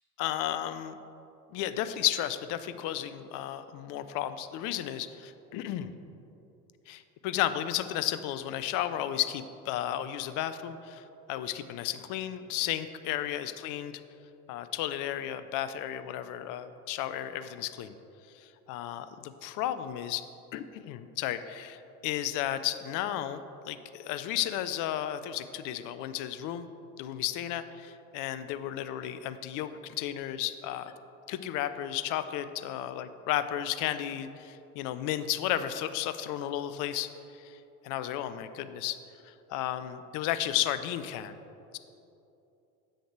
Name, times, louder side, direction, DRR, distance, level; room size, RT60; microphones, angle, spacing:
voice 1, 0.2-1.0 1.5-5.9 6.9-14.0 14.5-18.0 18.3-20.2 20.5-26.7 27.0-30.9 31.3-37.6 37.8-39.0 39.2-41.4, left 12 dB, 45° left, 12 dB, 0.5 m, -33 dB
8.0 x 6.4 x 4.6 m, 2.8 s
hypercardioid pair, 70°, 46 cm